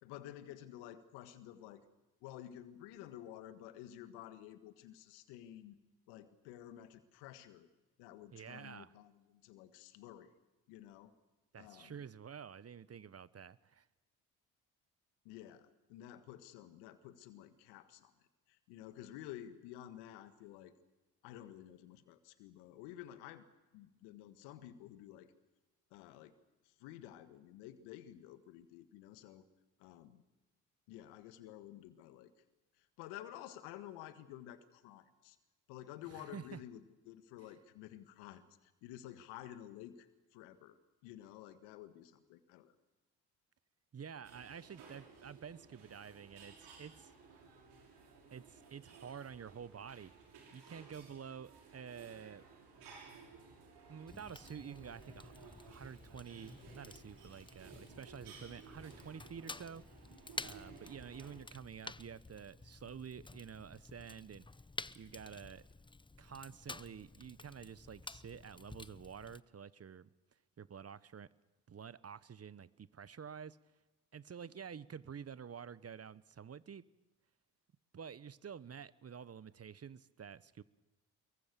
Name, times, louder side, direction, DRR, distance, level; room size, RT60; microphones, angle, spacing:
voice 1, 0.0-1.8 2.2-5.8 6.1-7.7 8.0-10.3 10.7-11.1 11.6-12.0 15.2-18.1 18.5-20.7 21.2-23.4 23.7-25.3 25.9-26.3 26.6-29.5 29.8-30.2 30.9-32.3 32.8-35.4 35.7-40.8 41.0-42.7, left 12 dB, 80° left, 11 dB, 1.7 m, -52 dB
voice 2, 8.3-8.9 11.5-13.9 36.1-36.6 43.9-47.1 48.3-50.1 50.5-52.4 53.9-55.3 55.7-59.8 60.4-64.5 64.9-65.6 66.2-70.1 70.6-71.3 71.7-73.6 74.1-76.8 77.9-80.6, right 7 dB, 35° right, 18 dB, 1.0 m, -49 dB
sound 1, 44.2-61.4, right 4 dB, 70° right, 5.9 m, -57 dB
Fire, 54.1-69.4, left 3 dB, 10° left, 0.8 m, -51 dB
24.0 x 22.5 x 6.9 m, 1.1 s
hypercardioid pair, 45°, 41 cm